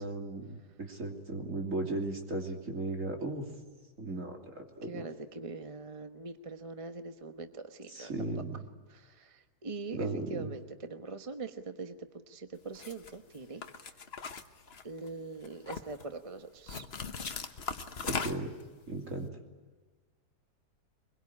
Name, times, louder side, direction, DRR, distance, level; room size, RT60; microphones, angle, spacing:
voice 1, 0.0-3.4 4.0-5.1 7.9-8.6 9.9-10.5 18.0-18.5 18.9-19.3, right 2 dB, 50° right, 2 dB, 3.3 m, -36 dB
voice 2, 4.9-8.1 8.9-9.3 9.6-11.9 12.3-13.6 14.8-16.9, right 3 dB, 25° right, 7 dB, 1.0 m, -42 dB
sound 1, 12.7-13.1 13.6-15.1 15.4-16.0 16.7-18.6, left 5 dB, 40° left, 1.3 m, -38 dB
24.0 x 22.0 x 9.7 m, 1.3 s
omnidirectional pair, 1.7 m